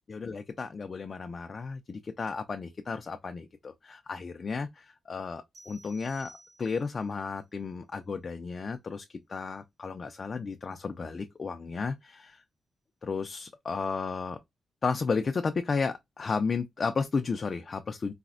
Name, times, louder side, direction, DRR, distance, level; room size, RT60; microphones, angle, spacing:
voice 1, 0.1-12.4 13.0-14.4 14.8-18.1, left 4 dB, 35° left, 0.3 m, -33 dB
sound 1, 5.5-7.1, right 2 dB, 85° right, 1.5 m, -53 dB
4.0 x 2.1 x 2.3 m
wide cardioid pair, 170°, 0 cm